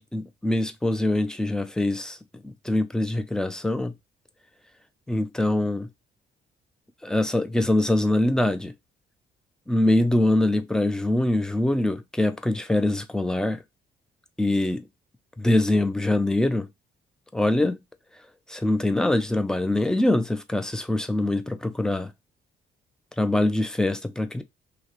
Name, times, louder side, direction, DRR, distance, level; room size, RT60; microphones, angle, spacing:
voice 1, 0.0-2.2 2.4-3.9 5.1-5.9 7.0-8.7 9.7-13.6 14.4-14.9 15.4-16.7 17.3-17.8 18.5-22.1 23.2-24.4, left 1 dB, 5° left, 0.3 m, -23 dB
2.7 x 2.0 x 2.4 m
cardioid pair, 90°, 20 cm